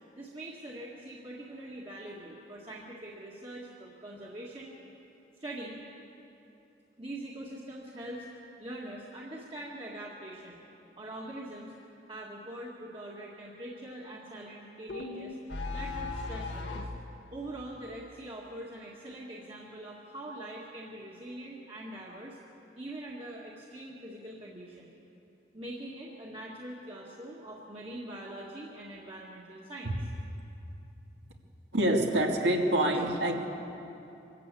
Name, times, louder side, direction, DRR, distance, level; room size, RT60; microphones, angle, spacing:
voice 1, 0.2-4.8 5.4-5.8 7.0-8.3 8.6-10.6 11.0-11.7 12.1-15.4 15.7-16.9 17.3-22.4 22.8-24.9 25.5-30.0 32.9-33.0, right 1 dB, 30° right, -4 dB, 1.8 m, -43 dB
sound 1, 14.9-17.0, left 3 dB, 80° left, 1.6 m, -37 dB
voice 2, 31.7-33.4, right 1 dB, 70° right, 2 dB, 2.2 m, -26 dB
24.5 x 13.5 x 8.5 m, 2.9 s
head